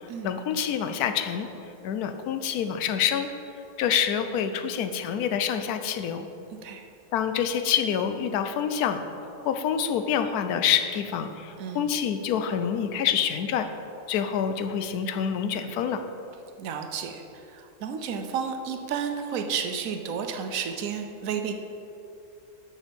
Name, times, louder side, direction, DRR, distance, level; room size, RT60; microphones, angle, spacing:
voice 1, 0.2-1.5 1.8-3.3 3.8-6.3 7.1-9.0 9.4-13.7 14.1-16.0, left 8 dB, 85° left, 8 dB, 1.1 m, -27 dB
voice 2, 11.6-11.9 16.6-21.5, right 7 dB, 70° right, 5 dB, 1.0 m, -32 dB
6.5 x 6.3 x 5.2 m, 2.8 s
omnidirectional pair, 1.6 m